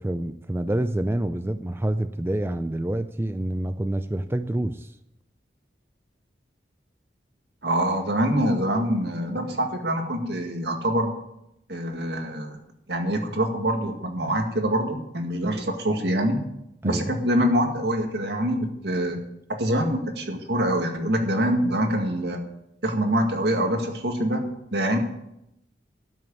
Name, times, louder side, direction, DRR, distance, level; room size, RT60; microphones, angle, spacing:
voice 1, 0.0-4.9 16.8-17.1, right 1 dB, 15° right, 10 dB, 0.4 m, -27 dB
voice 2, 7.6-11.1 11.7-12.6 12.9-16.4 16.8-19.2 19.5-22.4 22.8-24.4 24.7-25.0, right 1 dB, 70° right, 4 dB, 2.0 m, -25 dB
13.0 x 6.4 x 8.5 m, 0.83 s
head